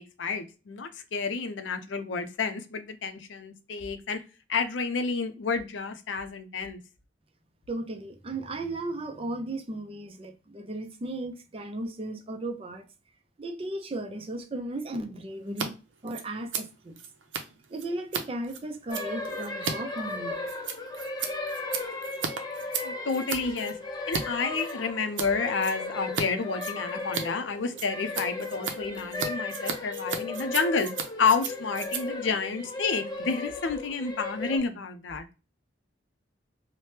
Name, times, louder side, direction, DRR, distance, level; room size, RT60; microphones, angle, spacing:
voice 1, 0.0-4.2 4.5-6.8 22.8-23.8 24.1-30.9 31.2-35.3, left 5 dB, 80° left, 0.5 m, -30 dB
voice 2, 7.7-12.9 13.4-15.7 16.0-17.0 17.7-20.4, right 1 dB, 30° right, 0.5 m, -35 dB
Scissors, 15.5-15.7 15.9-24.2 24.6-25.3 25.6-26.3 26.5-33.3, right 6 dB, 80° right, 0.6 m, -36 dB
sound 1, 18.9-34.6, left 2 dB, 20° left, 0.5 m, -36 dB
2.8 x 2.1 x 3.2 m
head